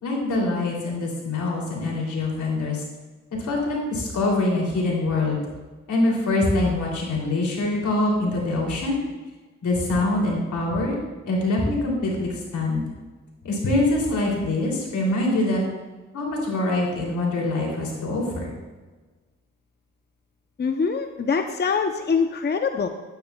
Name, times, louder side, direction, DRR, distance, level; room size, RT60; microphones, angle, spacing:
voice 1, 0.0-2.8 3.4-5.4 5.9-9.0 9.6-11.0 11.3-12.8 13.4-15.6 16.1-18.5, left 2 dB, 80° left, -2 dB, 2.9 m, -24 dB
voice 2, 20.6-22.9, left 5 dB, 35° left, 6 dB, 0.7 m, -24 dB
12.0 x 9.1 x 2.3 m, 1.3 s
cardioid pair, 60°, 29 cm